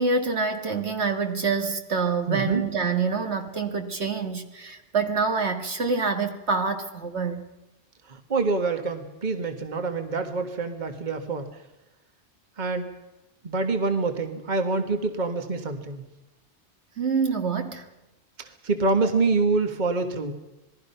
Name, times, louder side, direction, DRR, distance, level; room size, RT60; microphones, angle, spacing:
voice 1, 0.0-7.5 17.0-17.9, right 4 dB, 65° right, 2.0 m, -26 dB
voice 2, 2.3-2.6 8.1-11.5 12.6-12.9 13.4-16.1 18.4-20.3, right 3 dB, 40° right, 1.6 m, -26 dB
27.0 x 20.0 x 5.7 m
omnidirectional pair, 1.2 m